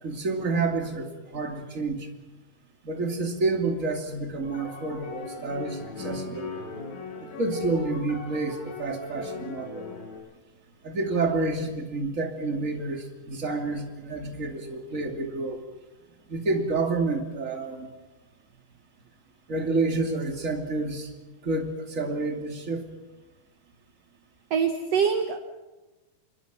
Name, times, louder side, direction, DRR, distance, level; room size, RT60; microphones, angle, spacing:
voice 1, 0.0-2.1 2.8-6.5 7.2-9.8 10.8-15.6 16.3-17.9 19.5-21.1 21.4-22.8, right 3 dB, 25° right, 3 dB, 2.4 m, -29 dB
sound 1, 4.4-10.2, left 4 dB, 70° left, 9.4 m, -38 dB
voice 2, 24.5-25.4, right 6 dB, 65° right, 5 dB, 1.7 m, -24 dB
26.0 x 22.5 x 6.1 m, 1.1 s
omnidirectional pair, 4.4 m